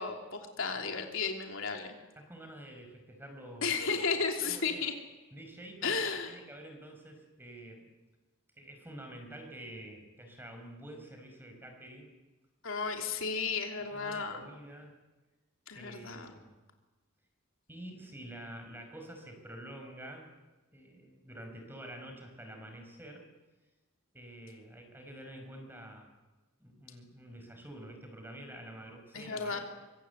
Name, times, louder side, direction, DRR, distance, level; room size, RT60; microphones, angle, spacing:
voice 1, 0.0-2.0 3.6-4.9 5.8-6.4 12.6-14.4 15.7-16.3 29.1-29.6, left 5 dB, 70° left, 3 dB, 3.2 m, -34 dB
voice 2, 2.2-4.9 5.3-7.9 8.6-12.1 13.9-14.9 15.7-16.6 17.7-20.3 20.7-23.3 24.1-26.1 26.6-29.6, right 1 dB, 10° right, 4 dB, 5.2 m, -48 dB
24.5 x 24.5 x 8.2 m, 1.2 s
head